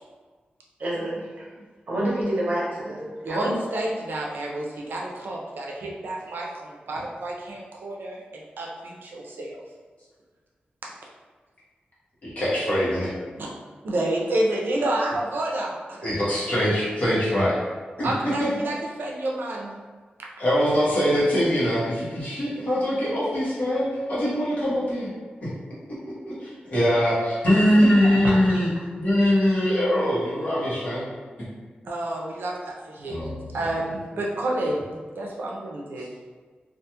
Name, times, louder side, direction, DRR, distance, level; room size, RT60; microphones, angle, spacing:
voice 1, 0.8-1.5 1.9-3.5 28.0-28.2, right 1 dB, 60° right, -6 dB, 0.8 m, -28 dB
voice 2, 3.2-9.6 13.4-13.5 13.8-16.1 18.0-19.7 31.8-36.1, right 1 dB, 85° right, -2 dB, 0.5 m, -29 dB
voice 3, 12.2-13.1 16.0-17.6 18.0-18.1 20.4-25.1 25.4-25.5 26.2-28.7 29.0-31.0 33.1-33.6, equal, 50° left, -9 dB, 1.0 m, -22 dB
2.4 x 2.3 x 2.8 m, 1.5 s
wide cardioid pair, 165°, 3 cm